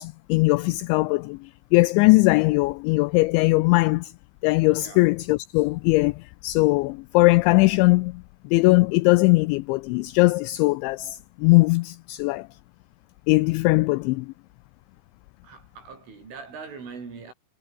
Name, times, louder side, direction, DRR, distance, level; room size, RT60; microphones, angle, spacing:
voice 1, 0.0-4.1 4.4-12.5 13.3-14.3, left 23 dB, 85° left, 2.6 m, -20 dB
voice 2, 15.4-17.3, right 5 dB, 70° right, 9.8 m, -41 dB
omnidirectional pair, 5.8 m